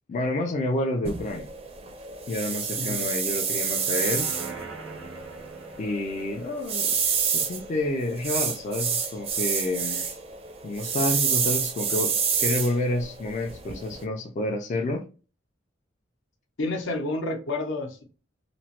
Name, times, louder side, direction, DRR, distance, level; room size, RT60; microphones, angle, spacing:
voice 1, 0.1-1.5 2.3-4.3 5.8-10.1 10.6-12.1 12.4-15.0, left 1 dB, 40° left, 0.3 m, -29 dB
sound 1, 1.0-14.0, right 6 dB, 30° right, 0.4 m, -29 dB
sound 2, 3.4-8.8 9.2-9.3, right 4 dB, 80° right, 0.7 m, -44 dB
voice 2, 16.6-18.0, left 2 dB, 75° left, 0.7 m, -29 dB
2.9 x 2.0 x 2.8 m
head